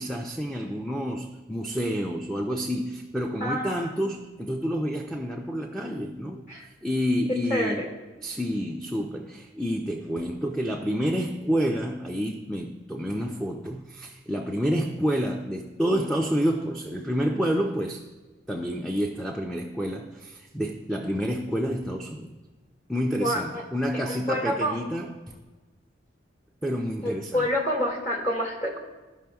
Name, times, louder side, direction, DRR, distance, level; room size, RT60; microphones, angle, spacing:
voice 1, 0.0-6.4 6.8-7.9 8.2-18.1 18.5-22.4 22.9-25.4 26.6-27.5, equal, ahead, 2 dB, 0.4 m, -29 dB
voice 2, 3.4-3.9 6.5-6.7 7.5-7.9 23.2-23.6 24.0-24.8 27.0-28.8, equal, 40° left, -2 dB, 1.8 m, -28 dB
13.5 x 5.4 x 2.3 m, 1.3 s
head